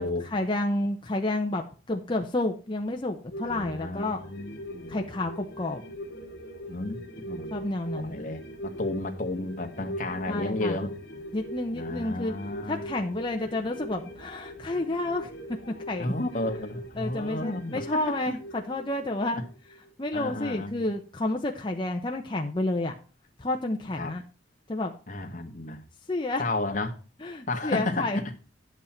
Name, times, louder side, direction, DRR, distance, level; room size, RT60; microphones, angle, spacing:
voice 1, 0.0-4.2 4.9-5.8 7.5-8.2 10.3-10.8 11.3-12.3 12.7-15.3 15.7-16.1 17.0-19.4 20.0-23.0 23.4-24.2 24.7-24.9 26.1-26.4 27.2-28.2, left 2 dB, 25° left, 0.7 m, -30 dB
sound 1, 3.3-20.1 20.4-20.5, equal, 55° left, 2.1 m, -42 dB
voice 2, 3.4-5.0 6.7-7.0 7.3-7.5 7.9-10.9 11.7-12.9 16.0-18.2 19.3-19.4 20.1-20.8 23.9-24.1 25.1-25.8 26.4-26.9 27.5-28.2, left 2 dB, 40° left, 1.5 m, -32 dB
10.5 x 8.2 x 4.4 m
head